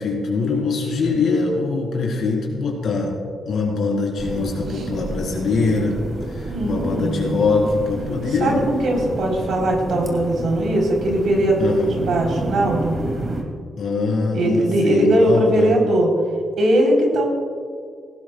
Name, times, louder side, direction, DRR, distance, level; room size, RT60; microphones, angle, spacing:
voice 1, 0.0-3.2 3.5-6.0 6.3-8.7 11.6-11.9 13.8-15.8, left 3 dB, 70° left, -2 dB, 3.7 m, -23 dB
sound 1, 4.2-13.4, right 2 dB, 50° right, 2.5 m, -30 dB
voice 2, 6.5-7.4 8.4-13.0 14.3-16.1 16.6-17.3, right 1 dB, 75° right, -1 dB, 3.7 m, -19 dB
18.0 x 16.5 x 2.3 m, 2.1 s
cardioid pair, 70°, 0 cm